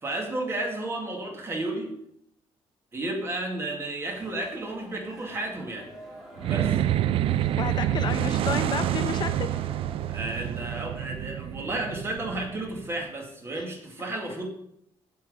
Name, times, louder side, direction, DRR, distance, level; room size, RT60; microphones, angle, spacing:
voice 1, 0.0-2.0 2.9-5.9 6.4-6.8 10.1-14.5, right 2 dB, 25° right, 1 dB, 2.2 m, -32 dB
sound 1, 4.0-10.9, equal, 5° right, 2.7 m, -48 dB
sound 2, 6.4-13.0, right 12 dB, 65° right, 0.4 m, -28 dB
voice 2, 7.6-9.5 13.6-13.7, left 7 dB, 45° left, 9 dB, 0.7 m, -31 dB
8.9 x 7.6 x 6.7 m, 0.75 s
cardioid pair, 160°, 10 cm